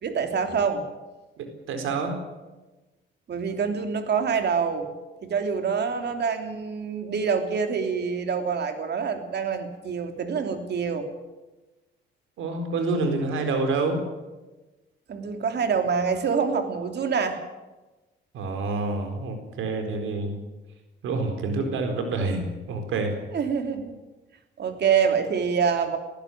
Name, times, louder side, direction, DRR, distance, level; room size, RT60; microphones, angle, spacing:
voice 1, 0.0-0.8 3.3-4.9 5.2-11.1 15.1-17.4 23.3-23.9 24.6-26.0, right 6 dB, 55° right, 6 dB, 3.1 m, -26 dB
voice 2, 1.4-2.3 12.4-14.1 18.3-20.4 21.0-23.2, right 3 dB, 85° right, 6 dB, 4.2 m, -27 dB
19.5 x 15.0 x 9.3 m, 1.1 s
cardioid pair, 90°, 20 cm